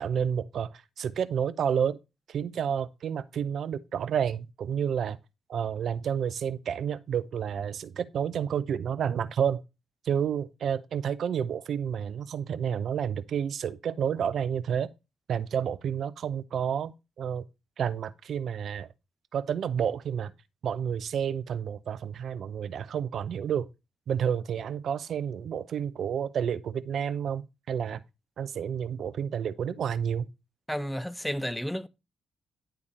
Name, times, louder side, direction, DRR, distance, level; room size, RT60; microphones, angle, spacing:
voice 1, 0.0-2.0 2.3-5.2 5.5-9.6 10.0-14.9 15.3-17.4 17.8-18.9 19.3-20.3 20.6-23.7 24.1-28.0 28.4-30.3, right 8 dB, 65° right, 0.5 m, -30 dB
voice 2, 30.7-31.9, equal, 5° left, 0.7 m, -32 dB
10.0 x 3.5 x 4.2 m
hypercardioid pair, 45°, 0 cm